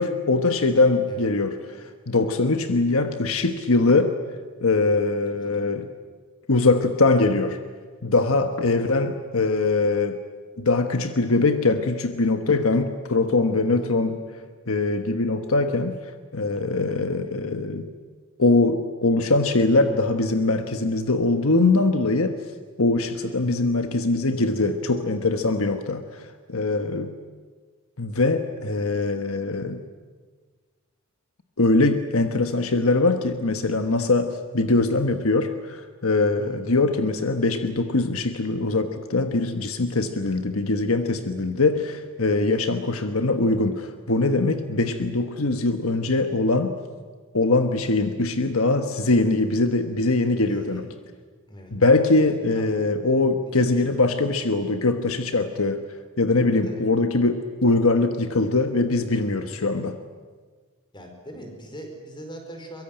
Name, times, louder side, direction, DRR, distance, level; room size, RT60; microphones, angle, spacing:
voice 1, 0.0-4.1 4.6-5.9 6.5-7.6 8.0-10.2 10.6-14.2 14.7-16.0 16.3-17.9 18.4-22.4 22.8-27.1 28.0-29.8 31.6-46.7 47.3-50.8 51.7-55.8 56.2-60.0, left 3 dB, 75° left, 7 dB, 1.3 m, -22 dB
voice 2, 50.4-50.8 51.5-51.7 52.5-52.8 53.1-53.9 56.5-56.8 59.4-59.7 60.9-62.8, equal, 20° left, 4 dB, 4.8 m, -41 dB
23.0 x 23.0 x 9.0 m, 1.5 s
head